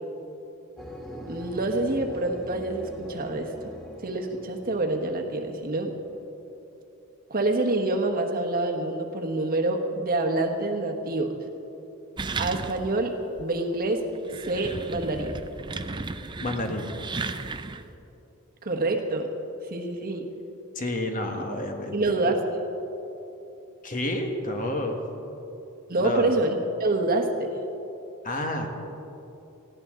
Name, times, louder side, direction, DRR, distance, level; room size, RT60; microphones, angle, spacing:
sound 1, 0.8-6.3, equal, ahead, 1.4 m, -42 dB
voice 1, 1.3-3.5 4.0-5.9 7.3-11.3 12.4-13.1 13.4-14.0 14.5-15.3 18.6-19.3 19.7-20.2 21.3-21.4 21.9-22.4 25.9-26.5 26.8-27.5, right 2 dB, 45° right, 3 dB, 1.2 m, -26 dB
sound 2, 12.2-13.0 13.4-13.5 14.1-17.9, right 3 dB, 20° right, 0.4 m, -35 dB
voice 2, 16.4-16.9 20.7-22.2 23.8-25.0 26.0-26.3 28.2-28.7, left 1 dB, 40° left, 3 dB, 1.4 m, -30 dB
19.5 x 15.0 x 3.7 m, 3.0 s
head